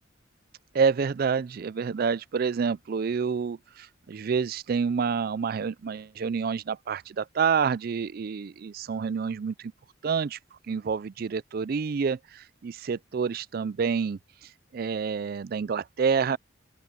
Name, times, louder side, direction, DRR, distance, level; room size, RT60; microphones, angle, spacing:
voice 1, 0.7-9.7 10.0-10.4 10.7-16.4, right 6 dB, 45° right, 0.3 m, -28 dB
open air
head